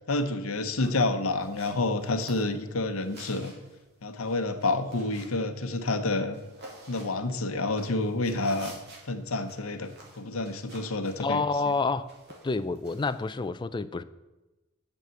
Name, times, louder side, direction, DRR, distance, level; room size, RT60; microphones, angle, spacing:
voice 1, 0.1-3.5 4.0-6.4 6.9-8.7 9.1-11.7, left 2 dB, 70° left, 0.9 m, -29 dB
sound 1, 0.7-13.5, right 2 dB, 50° right, 2.6 m, -52 dB
voice 2, 11.2-12.1 12.4-14.0, left 3 dB, 20° left, 0.3 m, -28 dB
8.4 x 6.5 x 7.7 m
head